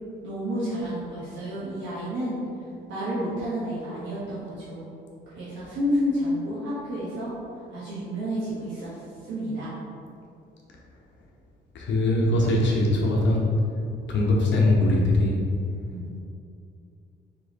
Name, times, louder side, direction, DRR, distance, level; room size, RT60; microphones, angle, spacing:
voice 1, 0.2-2.4 2.9-4.9 5.3-9.7 15.9-16.1, equal, 70° right, -11 dB, 1.2 m, -30 dB
voice 2, 11.7-13.5 14.1-15.4, left 1 dB, 65° left, -2 dB, 0.8 m, -21 dB
3.5 x 3.2 x 3.9 m, 2.5 s
cardioid pair, 90°, 20 cm